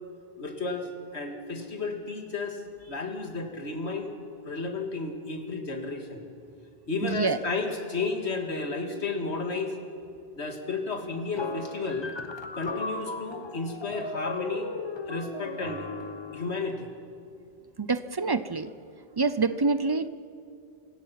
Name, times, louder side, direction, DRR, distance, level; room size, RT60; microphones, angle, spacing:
voice 1, 0.4-2.6 2.9-4.1 4.4-6.2 6.9-9.8 10.3-12.1 12.5-14.7 15.1-15.9 16.3-16.9, left 3 dB, 90° left, 4 dB, 2.3 m, -32 dB
voice 2, 7.0-7.4 17.8-18.7 19.2-20.1, right 4 dB, 35° right, 14 dB, 0.4 m, -26 dB
sound 1, 11.4-16.6, left 3 dB, 25° left, 1.0 m, -36 dB
27.0 x 17.5 x 5.9 m, 2.5 s
omnidirectional pair, 1.1 m